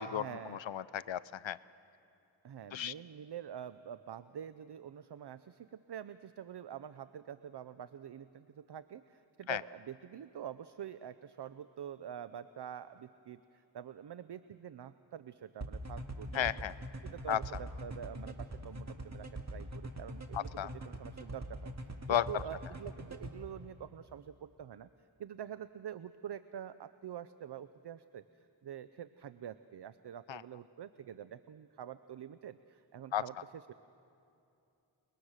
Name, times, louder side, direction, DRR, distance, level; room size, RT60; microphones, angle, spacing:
voice 1, 0.1-0.6 2.4-16.7 17.0-24.9 25.2-33.7, right 9 dB, 60° right, 13 dB, 0.6 m, -46 dB
voice 2, 0.7-1.6 2.7-2.9 9.5-9.6 16.3-16.7 17.3-17.4 20.3-20.7 22.1-22.4 30.3-30.4 33.1-33.2, left 10 dB, 70° left, 17 dB, 0.6 m, -33 dB
sound 1, 15.6-23.3, right 1 dB, 35° right, 2.0 m, -42 dB
29.5 x 21.0 x 6.4 m, 2.7 s
wide cardioid pair, 65°, 47 cm